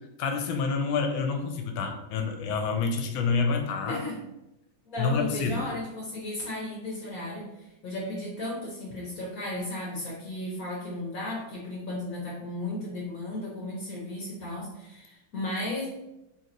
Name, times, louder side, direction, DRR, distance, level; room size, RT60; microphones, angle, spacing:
voice 1, 0.2-4.0 5.0-5.6, left 4 dB, 80° left, 5 dB, 1.3 m, -28 dB
voice 2, 3.9-4.2 4.8-15.9, left 1 dB, 60° left, -4 dB, 1.0 m, -35 dB
3.3 x 2.9 x 3.8 m, 0.92 s
omnidirectional pair, 2.3 m